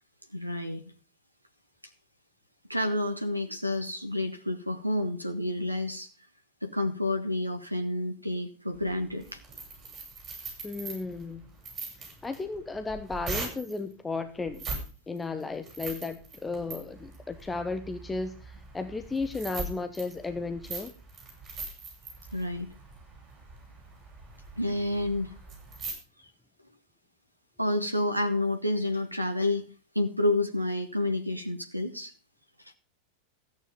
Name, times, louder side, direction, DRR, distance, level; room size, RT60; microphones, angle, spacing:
voice 1, 0.3-0.9 2.7-6.1 6.6-9.4 22.3-22.7 24.6-25.3 27.6-29.6 29.9-32.1, left 1 dB, 90° right, 7 dB, 1.0 m, -29 dB
sound 1, 8.8-13.8 14.5-14.9 15.2-25.9, right 4 dB, 25° right, 6.5 m, -41 dB
voice 2, 10.6-11.4 12.0-14.7 15.1-20.9, left 3 dB, 10° left, 10 dB, 0.9 m, -34 dB
14.0 x 9.4 x 5.1 m, 0.37 s
figure-of-eight pair, 90°, 0 cm